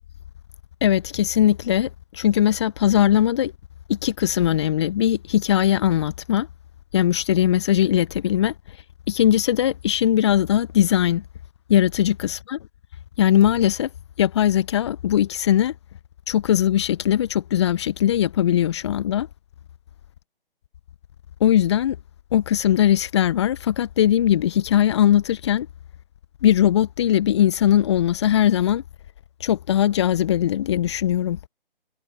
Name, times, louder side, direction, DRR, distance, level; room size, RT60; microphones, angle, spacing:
voice 1, 0.8-1.9 2.2-3.5 3.9-6.5 6.9-8.5 9.1-11.2 11.7-12.6 13.2-13.9 14.2-15.7 16.3-19.3 21.4-22.0 22.3-25.7 26.4-28.8 29.4-31.4, left 11 dB, 30° left, 0.7 m, -20 dB
figure-of-eight pair, 140°, 29 cm